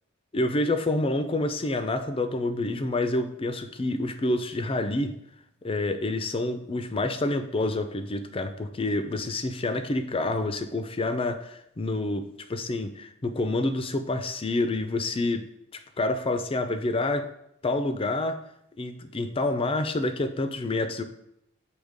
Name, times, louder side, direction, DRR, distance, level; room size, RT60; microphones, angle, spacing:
voice 1, 0.3-5.2 5.6-15.5 16.0-17.3 17.6-18.4 18.8-21.0, left 2 dB, 25° left, 9 dB, 0.5 m, -28 dB
7.9 x 2.9 x 5.1 m, 0.77 s
head